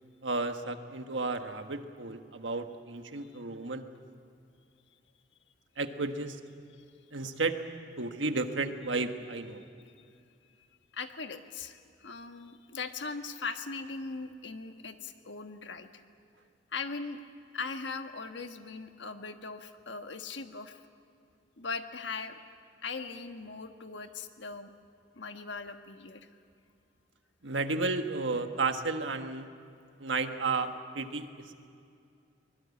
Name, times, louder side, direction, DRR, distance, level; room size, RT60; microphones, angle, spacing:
voice 1, 0.2-3.8 5.8-6.4 7.1-7.6 8.0-9.6 27.4-29.5 30.0-31.3, right 3 dB, 85° right, 7 dB, 1.5 m, -32 dB
voice 2, 10.9-16.0 16.7-17.2 17.5-20.8 21.6-22.4 22.8-24.7 25.1-26.3, left 4 dB, 75° left, 7 dB, 1.4 m, -40 dB
24.0 x 21.0 x 8.5 m, 2.4 s
head